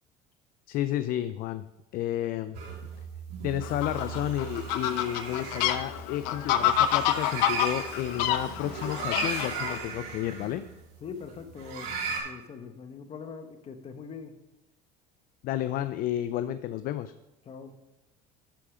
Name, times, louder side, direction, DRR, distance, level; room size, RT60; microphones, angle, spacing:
voice 1, 0.7-1.6 1.9-2.6 3.4-10.6 15.4-17.1, left 12 dB, 55° left, 13 dB, 0.4 m, -31 dB
sound 1, 2.5-12.2, right 5 dB, 75° right, 3.8 m, -37 dB
Fowl, 3.6-9.8, left 10 dB, 80° left, 0.8 m, -28 dB
voice 2, 11.0-14.3 17.4-17.8, left 5 dB, 35° left, 8 dB, 1.1 m, -42 dB
12.0 x 4.8 x 5.0 m, 0.96 s
cardioid pair, 120°, 18 cm